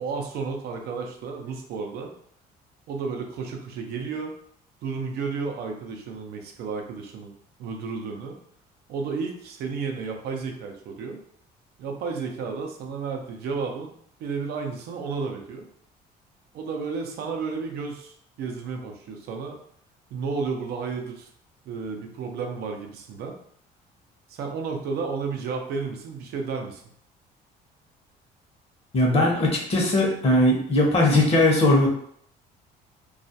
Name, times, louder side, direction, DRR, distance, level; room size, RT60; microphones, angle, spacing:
voice 1, 0.0-2.1 2.9-4.3 4.8-7.3 7.6-8.4 8.9-11.2 11.8-13.9 14.2-15.7 16.5-19.6 20.1-21.3 21.7-23.4 24.3-26.8, right 5 dB, 70° right, 3 dB, 0.5 m, -32 dB
voice 2, 28.9-31.9, left 1 dB, 35° left, -1 dB, 0.8 m, -19 dB
2.3 x 2.1 x 2.7 m, 0.64 s
cardioid pair, 110°, 17 cm